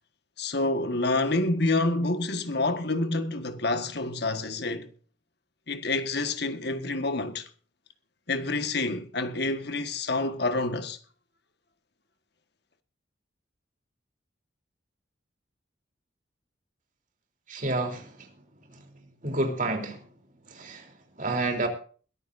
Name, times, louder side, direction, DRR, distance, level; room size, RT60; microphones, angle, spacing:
voice 1, 0.4-4.9 5.7-7.5 8.3-11.0, left 2 dB, 55° left, 1.7 m, -28 dB
voice 2, 17.5-18.3 19.2-20.0 20.5-20.9 21.2-21.7, right 2 dB, 40° right, 3.6 m, -29 dB
22.0 x 14.0 x 2.7 m
head